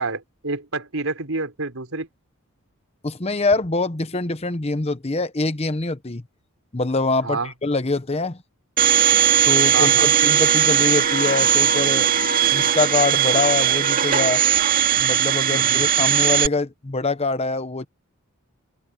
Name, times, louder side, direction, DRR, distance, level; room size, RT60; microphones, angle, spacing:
voice 1, 0.0-2.1 7.2-7.5 9.7-10.1 15.5-15.8, right 3 dB, 75° right, 4.2 m, -28 dB
voice 2, 3.0-6.2 6.7-8.4 9.5-12.1 12.5-14.4 15.0-17.9, left 3 dB, 30° left, 0.9 m, -24 dB
Domestic sounds home sounds, 8.8-16.5, right 9 dB, 40° right, 2.1 m, -18 dB
open air
head